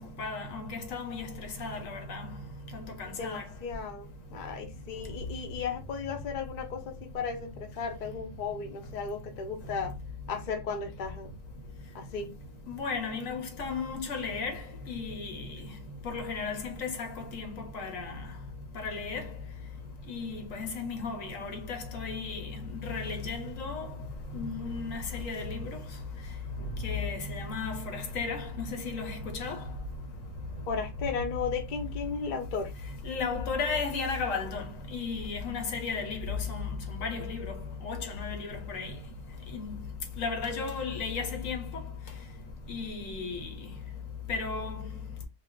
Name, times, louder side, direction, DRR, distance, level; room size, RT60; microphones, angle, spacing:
voice 1, 0.0-2.3 2.7-3.4 12.7-14.6 14.9-15.5 16.0-18.1 18.8-19.2 20.1-22.4 22.8-23.9 24.3-25.7 26.8-29.6 33.0-34.6 34.9-37.6 37.8-38.9 39.5-39.8 40.2-41.6 42.7-43.5 44.3-44.8, left 4 dB, 80° left, 1.2 m, -34 dB
voice 2, 3.2-10.0 10.3-11.3 11.9-12.3 30.7-32.7, left 6 dB, 50° left, 0.6 m, -35 dB
2.4 x 2.2 x 3.5 m
omnidirectional pair, 1.3 m